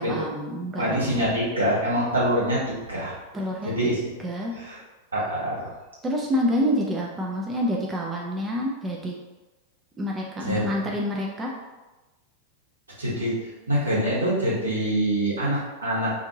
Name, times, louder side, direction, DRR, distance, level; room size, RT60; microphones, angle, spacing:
voice 1, 0.0-1.0 3.3-3.7 4.2-4.6 6.0-9.2 10.0-11.5, equal, 15° right, -2 dB, 0.4 m, -27 dB
voice 2, 0.7-3.1 3.6-4.0 4.6-4.8 5.1-5.7 10.4-10.6 13.0-13.3 13.7-16.2, equal, 75° right, -7 dB, 1.3 m, -25 dB
2.7 x 2.6 x 3.8 m, 1.1 s
figure-of-eight pair, 90°, 0 cm